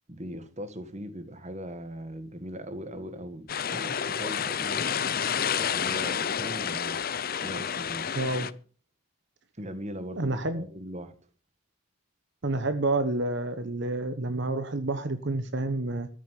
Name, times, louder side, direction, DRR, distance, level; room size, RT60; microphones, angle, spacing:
voice 1, 0.1-8.1 9.6-11.1, equal, 30° right, 1.6 m, -40 dB
sound 1, 3.5-8.5, left 8 dB, 40° left, 0.6 m, -30 dB
voice 2, 8.1-8.5 10.2-10.6 12.4-16.1, right 2 dB, 50° right, 1.2 m, -29 dB
14.0 x 7.4 x 9.2 m
head